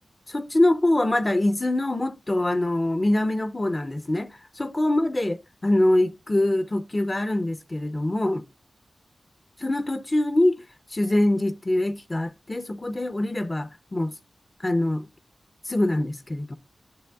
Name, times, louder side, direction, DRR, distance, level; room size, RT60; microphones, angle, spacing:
voice 1, 0.3-5.4 5.6-8.4 9.6-10.6 10.9-14.1 14.6-15.1 15.7-16.6, left 1 dB, 25° left, 0.5 m, -24 dB
10.5 x 7.4 x 2.3 m
wide cardioid pair, 95°, 0 cm